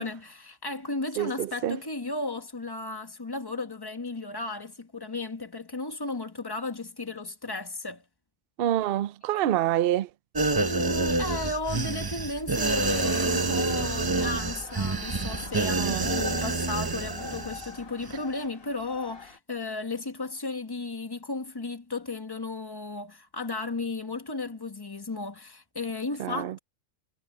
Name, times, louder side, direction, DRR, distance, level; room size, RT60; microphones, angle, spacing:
voice 1, 0.0-8.0 10.6-26.6, left 3 dB, 20° left, 1.4 m, -34 dB
voice 2, 1.2-1.8 8.6-10.1 15.7-16.1 26.2-26.6, right 12 dB, 60° right, 0.7 m, -27 dB
sound 1, 10.3-17.7 18.0-18.2, right 3 dB, 25° right, 0.6 m, -28 dB
sound 2, 12.5-19.4, left 4 dB, 50° left, 1.9 m, -44 dB
omnidirectional pair, 1.3 m